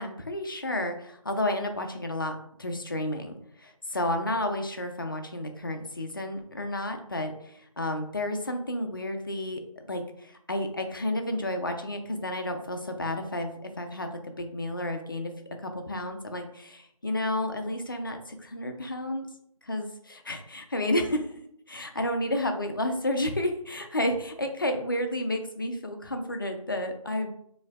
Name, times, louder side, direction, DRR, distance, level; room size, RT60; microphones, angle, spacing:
voice 1, 0.0-9.6 9.9-15.3 15.6-19.3 19.6-21.3 21.7-27.3, left 1 dB, 40° left, 5 dB, 0.4 m, -31 dB
4.1 x 2.7 x 2.3 m, 0.71 s
figure-of-eight pair, 165°, 18 cm